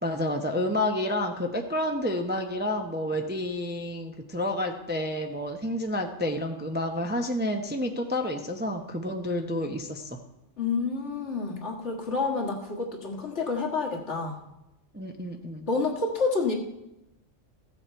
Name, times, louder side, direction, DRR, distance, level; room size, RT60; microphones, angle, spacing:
voice 1, 0.0-10.2 14.9-15.7, left 1 dB, 10° right, 4 dB, 0.6 m, -29 dB
voice 2, 10.6-14.4 15.7-16.5, left 4 dB, 65° left, 0 dB, 1.8 m, -29 dB
15.0 x 7.2 x 4.5 m, 0.94 s
omnidirectional pair, 1.3 m